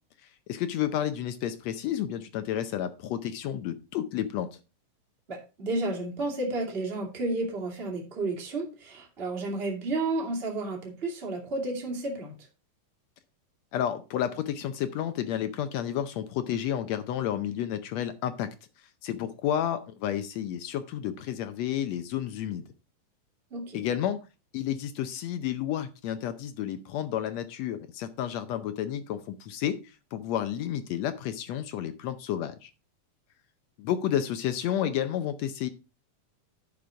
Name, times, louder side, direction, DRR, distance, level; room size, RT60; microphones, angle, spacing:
voice 1, 0.5-4.5 13.7-18.5 19.0-22.6 23.7-24.2 24.5-32.7 33.8-35.7, left 10 dB, 80° left, 10 dB, 1.5 m, -31 dB
voice 2, 5.3-12.3 23.5-23.8, right 2 dB, 20° right, 0 dB, 2.2 m, -32 dB
10.0 x 5.5 x 4.5 m, 0.30 s
omnidirectional pair, 3.8 m